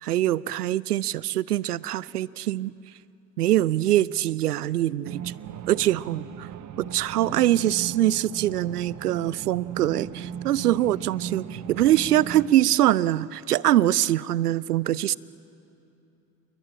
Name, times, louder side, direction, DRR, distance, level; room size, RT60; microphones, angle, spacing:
voice 1, 0.0-2.7 3.4-5.3 5.7-6.5 6.9-15.1, right 13 dB, 85° right, 22 dB, 0.6 m, -23 dB
sound 1, 5.0-12.5, right 9 dB, 40° right, 1.1 m, -37 dB
29.0 x 22.5 x 8.8 m, 2.8 s
hypercardioid pair, 65°, 45 cm